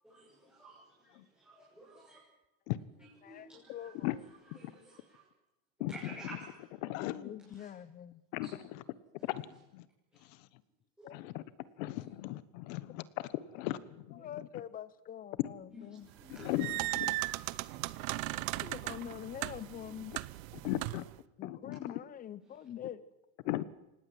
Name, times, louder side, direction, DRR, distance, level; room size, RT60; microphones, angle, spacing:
voice 1, 0.0-2.2 3.0-4.1 4.5-5.3 5.9-6.6 7.4-7.7 8.4-8.5 10.1-10.2 11.0-11.1 11.9-12.0 13.7-13.8 14.2-14.3 15.7-17.9 19.3-19.8 22.4-22.7, right 1 dB, ahead, 6.4 m, -53 dB
voice 2, 3.2-4.2 7.0-8.2 11.0-11.4 14.1-16.1 18.6-20.2 21.4-23.0, left 10 dB, 20° left, 0.9 m, -45 dB
voice 3, 6.8-7.4 8.3-8.8 9.3-9.8 11.1-11.4 11.8-13.3 13.5-13.8 14.1-14.2 16.4-17.1 20.6-21.0 21.4-21.8 23.4-23.7, left 16 dB, 75° left, 1.4 m, -37 dB
sound 1, 16.2-21.2, right 20 dB, 80° right, 1.0 m, -37 dB
25.0 x 19.0 x 7.8 m
cardioid pair, 165°, 39 cm